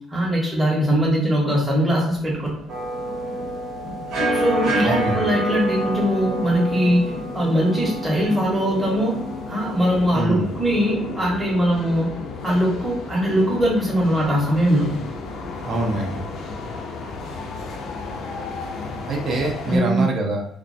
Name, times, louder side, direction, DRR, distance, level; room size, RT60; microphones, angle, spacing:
voice 1, 0.1-2.5 4.3-9.2 9.5-12.2 12.4-15.0 19.7-20.1, equal, 10° right, -5 dB, 0.8 m, -21 dB
sound 1, 2.1-19.8, left 3 dB, 60° left, 0.4 m, -34 dB
sound 2, 2.7-10.1, right 1 dB, 75° right, 0.9 m, -28 dB
voice 2, 4.8-5.3 10.1-10.5 15.6-16.2 19.1-20.4, right 2 dB, 45° right, 0 dB, 0.5 m, -24 dB
2.2 x 2.1 x 2.5 m, 0.71 s
cardioid pair, 160°, 0 cm